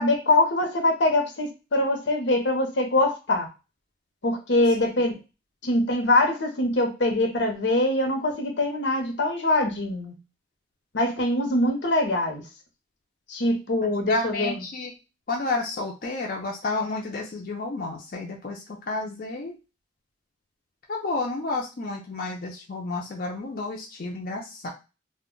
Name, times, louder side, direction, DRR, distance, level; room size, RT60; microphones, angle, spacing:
voice 1, 0.0-3.5 4.2-5.1 5.6-10.1 10.9-12.4 13.3-14.5, left 2 dB, 80° left, 4 dB, 0.8 m, -23 dB
voice 2, 13.8-14.9 15.3-19.6 20.9-24.7, left 2 dB, 50° left, -1 dB, 0.5 m, -31 dB
2.1 x 2.1 x 3.7 m, 0.29 s
head